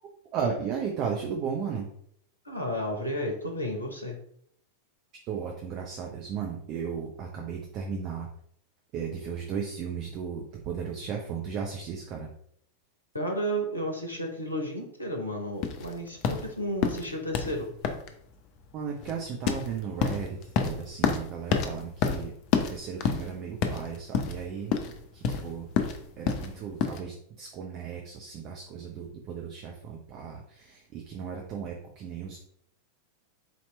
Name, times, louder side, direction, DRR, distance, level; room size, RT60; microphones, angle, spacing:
voice 1, 0.3-1.9 5.2-8.3 8.9-12.3 18.7-22.3 22.6-24.8 25.1-25.7 26.2-32.4, right 6 dB, 35° right, 1 dB, 0.6 m, -35 dB
voice 2, 2.4-4.2 13.1-17.7, equal, 85° left, 2 dB, 0.7 m, -32 dB
sound 1, 15.6-27.0, left 6 dB, 40° left, 0.5 m, -30 dB
4.2 x 2.9 x 3.2 m, 0.67 s
figure-of-eight pair, 90°, 0 cm